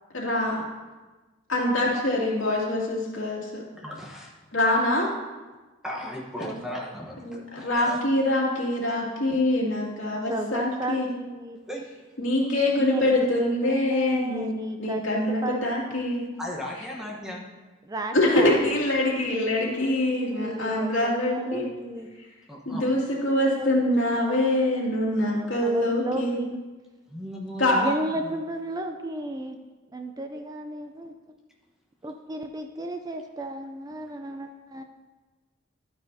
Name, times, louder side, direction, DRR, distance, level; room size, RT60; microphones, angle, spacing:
voice 1, 0.1-0.6 1.5-3.6 4.5-5.1 7.2-11.1 12.2-14.5 14.8-16.2 18.1-21.7 22.7-26.4 27.6-27.8, left 1 dB, 75° left, -4 dB, 2.4 m, -24 dB
voice 2, 3.7-4.3 5.8-8.0 11.7-11.9 16.4-17.5 22.5-22.9 27.1-28.0 28.2-28.3, equal, 5° right, -3 dB, 1.0 m, -36 dB
voice 3, 9.8-11.6 12.2-12.4 12.7-15.6 17.8-18.6 19.7-22.1 22.9-23.1 23.3-24.5 25.2-26.6 27.8-29.6 29.9-31.1 32.0-34.8, right 1 dB, 20° right, 6 dB, 0.4 m, -34 dB
12.0 x 9.2 x 2.7 m, 1.2 s
head